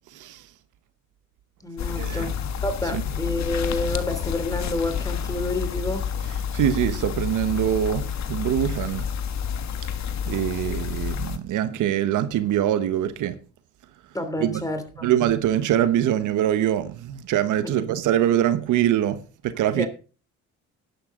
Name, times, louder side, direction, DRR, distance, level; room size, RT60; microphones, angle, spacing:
voice 1, 0.1-0.4 2.0-2.3 2.9-3.0 6.5-9.1 10.3-13.4 14.4-14.7 15.0-19.9, right 11 dB, 85° right, 1.2 m, -23 dB
voice 2, 1.6-6.1 14.1-15.1 17.6-17.8 19.8-19.9, left 2 dB, 10° left, 3.0 m, -29 dB
sound 1, 1.8-11.4, left 8 dB, 65° left, 1.5 m, -29 dB
11.5 x 11.0 x 3.8 m
cardioid pair, 90°, 30 cm